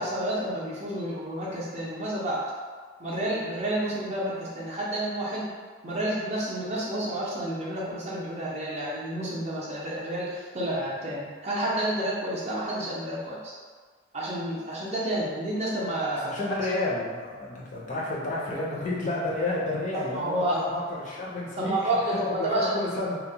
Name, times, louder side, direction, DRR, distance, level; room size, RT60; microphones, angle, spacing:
voice 1, 0.0-2.4 3.0-5.5 5.8-13.5 14.1-16.4 20.1-20.7 21.6-22.7, right 1 dB, 35° right, -6 dB, 0.5 m, -30 dB
voice 2, 16.2-21.8 22.1-23.2, left 2 dB, 40° left, -4 dB, 0.4 m, -31 dB
2.8 x 2.0 x 2.7 m, 1.6 s
head